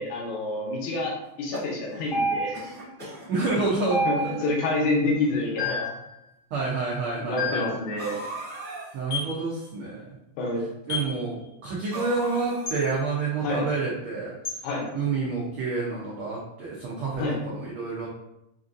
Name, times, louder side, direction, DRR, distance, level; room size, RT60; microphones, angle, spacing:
voice 1, 0.0-2.6 4.1-4.2 4.4-5.9 7.2-8.2 10.4-10.6 13.4-13.6 14.6-14.9 17.2-17.4, left 2 dB, 85° left, -2 dB, 2.2 m, -28 dB
sound 1, 1.3-2.1 2.5-3.3 4.1-4.2 4.4-4.5 5.5-5.6 8.0-9.0 11.9-13.0, right 1 dB, 30° right, 1.1 m, -38 dB
sound 2, 2.1-2.8 3.9-4.6 5.6-6.0 7.4-7.8 9.1-9.4 10.9-11.2 12.7-12.8 14.4-14.6, left 1 dB, 70° left, 0.7 m, -28 dB
voice 2, 3.3-4.4 5.3-5.4 6.5-7.7 8.9-10.0 10.9-14.3 14.9-18.1, right 4 dB, 80° right, -4 dB, 1.1 m, -28 dB
6.2 x 2.6 x 2.5 m, 0.85 s
omnidirectional pair, 3.3 m